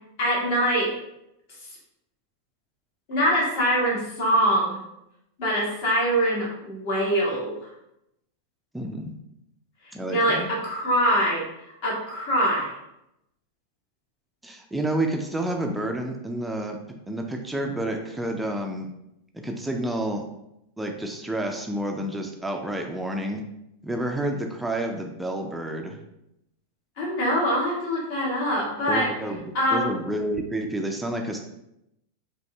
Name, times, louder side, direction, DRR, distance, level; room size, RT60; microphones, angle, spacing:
voice 1, 0.2-0.9 3.1-4.8 5.4-7.7 10.1-11.4 11.8-12.7 27.0-29.1 29.5-29.9, equal, 50° left, -3 dB, 1.5 m, -23 dB
voice 2, 8.7-9.1 9.9-10.5 14.4-16.8 17.1-18.9 19.3-20.2 20.8-23.4 23.8-26.0 28.9-29.4 29.7-31.4, right 1 dB, 5° right, 2 dB, 0.5 m, -29 dB
5.3 x 2.6 x 3.2 m, 0.83 s
figure-of-eight pair, 90°, 0 cm